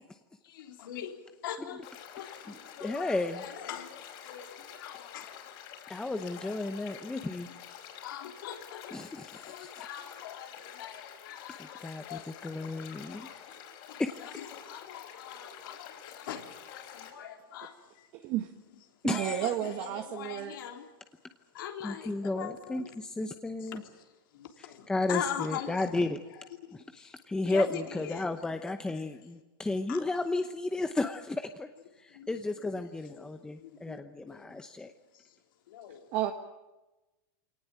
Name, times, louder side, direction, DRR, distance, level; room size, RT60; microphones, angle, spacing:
voice 1, 0.4-1.8 2.1-2.4 2.8-5.5 6.3-7.2 8.0-9.0 9.3-13.4 13.9-18.1 19.1-20.9 21.5-22.9 23.6-26.1 26.3-27.1 27.4-28.3 28.7-29.3 29.9-30.0 32.1-32.7 33.0-34.0 34.3-34.6 35.1-35.4 35.7-36.1, left 10 dB, 75° left, 4 dB, 3.5 m, -43 dB
sound 1, 1.8-17.1, left 9 dB, 50° left, 5.5 m, -48 dB
voice 2, 2.8-3.4 5.9-7.5 8.9-9.5 11.6-13.3 14.0-14.1 19.0-19.5 21.8-23.8 24.6-26.2 26.7-31.7 32.0-34.9, left 2 dB, 5° left, 7 dB, 0.9 m, -33 dB
voice 3, 18.1-18.5 19.0-20.6 36.1-36.3, right 12 dB, 45° right, 6 dB, 1.5 m, -32 dB
24.0 x 18.5 x 8.9 m, 1.1 s
supercardioid pair, 145°, 11 cm